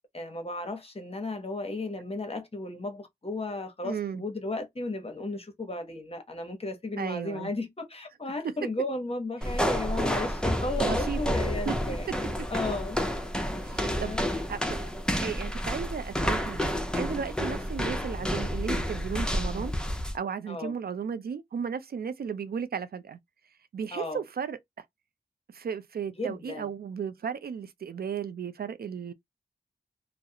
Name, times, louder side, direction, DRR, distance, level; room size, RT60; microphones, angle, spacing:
voice 1, 0.1-12.1 12.5-13.2 13.9-14.3 17.5-17.7 20.5-20.7 23.9-24.2 26.2-26.7, left 2 dB, 35° left, 0.9 m, -35 dB
voice 2, 3.8-4.2 7.0-7.5 9.4-9.8 10.8-11.2 11.7-11.8 13.6-14.9 15.2-19.7 20.0-23.2 23.7-24.6 25.5-29.1, right 7 dB, 60° right, 0.4 m, -35 dB
sound 1, 9.4-20.2, equal, 5° left, 0.6 m, -30 dB
2.3 x 2.0 x 2.7 m
cardioid pair, 40°, 18 cm